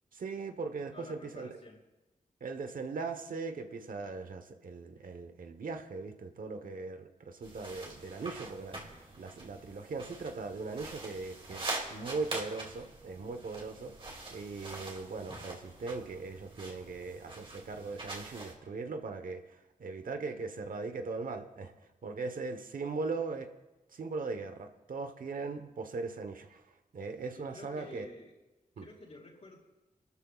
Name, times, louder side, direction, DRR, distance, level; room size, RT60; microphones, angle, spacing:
voice 1, 0.1-1.5 2.4-21.7 22.0-23.5 23.9-26.6 26.9-28.1 28.8-28.9, right 4 dB, 80° right, 7 dB, 1.2 m, -39 dB
voice 2, 0.9-1.8 27.3-28.3 28.8-29.6, left 2 dB, 55° left, -4 dB, 5.5 m, -50 dB
sound 1, 7.4-18.5, right 2 dB, 40° right, 2.6 m, -44 dB
29.0 x 13.0 x 2.5 m, 1.1 s
wide cardioid pair, 125°, 14 cm